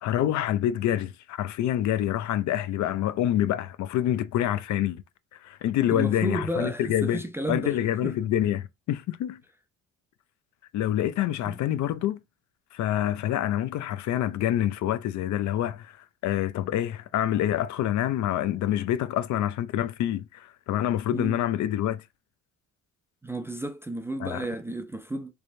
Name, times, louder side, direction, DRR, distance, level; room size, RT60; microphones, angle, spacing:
voice 1, 0.0-5.0 5.4-7.2 7.5-9.4 10.7-12.2 12.7-22.0 24.2-24.4, left 12 dB, 65° left, 0.5 m, -27 dB
voice 2, 5.9-7.8 8.0-8.1 11.5-11.6 21.1-21.4 23.2-25.3, right 1 dB, 10° right, 0.3 m, -32 dB
3.4 x 3.1 x 2.6 m
cardioid pair, 115°, 32 cm